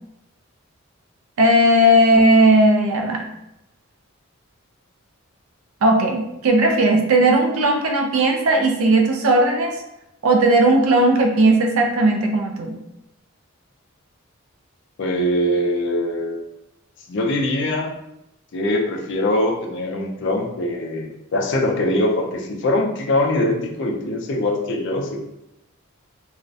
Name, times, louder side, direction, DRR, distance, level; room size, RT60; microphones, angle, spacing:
voice 1, 1.4-3.2 5.8-9.8 10.2-12.7, right 1 dB, 75° right, 3 dB, 0.4 m, -16 dB
voice 2, 15.0-16.4 17.1-17.9 18.5-25.2, left 1 dB, 55° left, 1 dB, 0.4 m, -22 dB
2.4 x 2.1 x 2.6 m, 0.87 s
head